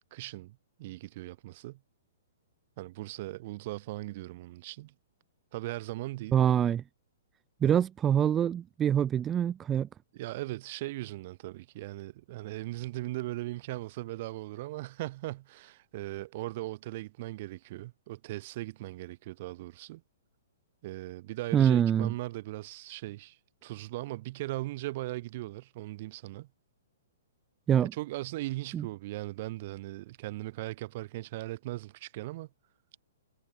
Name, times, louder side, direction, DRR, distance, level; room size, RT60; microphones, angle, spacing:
voice 1, 0.1-1.8 2.8-4.9 5.5-6.4 7.6-7.8 10.1-20.0 20.8-23.4 23.6-26.5 27.9-32.5, right 18 dB, 35° right, 7.3 m, -38 dB
voice 2, 6.3-6.8 7.6-9.9 21.5-22.1 27.7-27.9 28.7-28.9, right 9 dB, 15° right, 0.8 m, -25 dB
hypercardioid pair, 165°, 0 cm